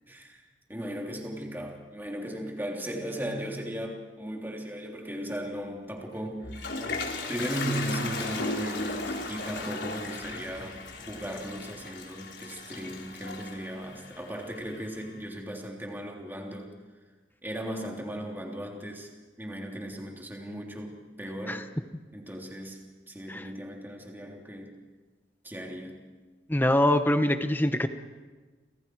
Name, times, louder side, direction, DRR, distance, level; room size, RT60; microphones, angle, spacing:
voice 1, 0.1-0.4 0.7-6.8 7.3-16.7 17.4-19.1 19.4-21.7 22.1-24.8 25.4-26.1, right 1 dB, 10° right, 0 dB, 3.3 m, -37 dB
Toilet flush, 6.2-15.0, left 3 dB, 80° left, 3.9 m, -36 dB
voice 2, 26.5-27.9, left 1 dB, 10° left, 8 dB, 1.0 m, -23 dB
29.5 x 26.0 x 4.7 m, 1.3 s
head